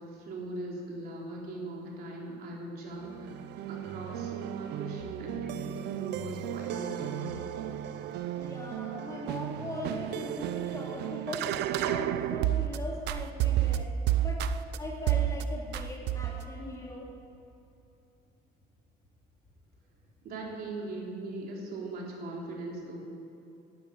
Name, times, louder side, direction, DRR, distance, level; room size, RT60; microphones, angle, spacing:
voice 1, 0.0-7.4 20.2-23.0, right 2 dB, 65° right, -2 dB, 3.6 m, -40 dB
sound 1, 3.0-12.8 13.1-14.8 15.1-15.4 15.7-16.5, right 12 dB, 80° right, 0.6 m, -32 dB
voice 2, 8.4-13.9 14.2-14.4 14.8-17.1, left 1 dB, 20° left, -2 dB, 3.3 m, -40 dB
11.5 x 10.5 x 8.4 m, 2.8 s
cardioid pair, 110°, 17 cm